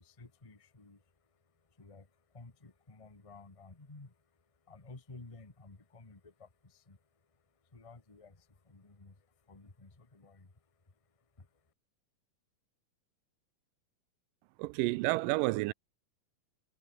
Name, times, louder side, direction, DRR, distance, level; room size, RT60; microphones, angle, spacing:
voice 1, 0.0-11.7, left 3 dB, 15° left, 1.1 m, -55 dB
voice 2, 14.6-15.7, right 21 dB, 80° right, 2.1 m, -30 dB
omnidirectional pair, 4.2 m